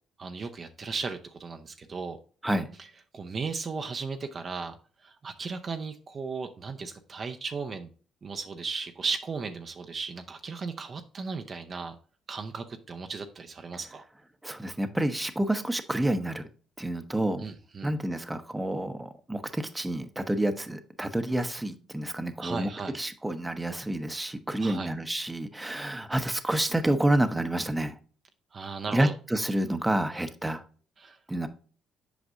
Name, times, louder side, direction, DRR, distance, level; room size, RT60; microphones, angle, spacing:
voice 1, 0.2-2.2 3.1-4.8 5.0-7.9 8.2-12.0 12.3-14.0 17.4-17.9 22.4-22.9 24.6-24.9 28.5-29.1 31.0-31.2, right 4 dB, 45° right, 0.6 m, -36 dB
voice 2, 14.4-16.5 16.8-17.5 17.8-28.0 28.9-30.6 31.3-31.5, right 1 dB, 10° right, 0.8 m, -29 dB
8.0 x 5.1 x 2.5 m
supercardioid pair, 65°, 0 cm